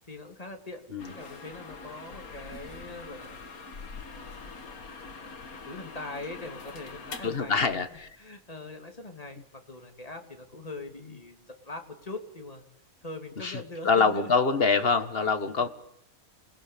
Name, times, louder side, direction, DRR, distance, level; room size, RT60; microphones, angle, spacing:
voice 1, 0.0-3.4 4.1-7.8 8.2-12.6 13.0-14.4 14.7-14.9 15.2-15.7, left 2 dB, 25° left, 4 dB, 3.0 m, -43 dB
sound 1, 1.0-8.1, left 4 dB, 80° left, 2.4 m, -44 dB
voice 2, 7.2-8.1 13.4-15.7, left 4 dB, 40° left, 10 dB, 1.8 m, -25 dB
27.0 x 20.5 x 8.6 m, 0.79 s
omnidirectional pair, 1.5 m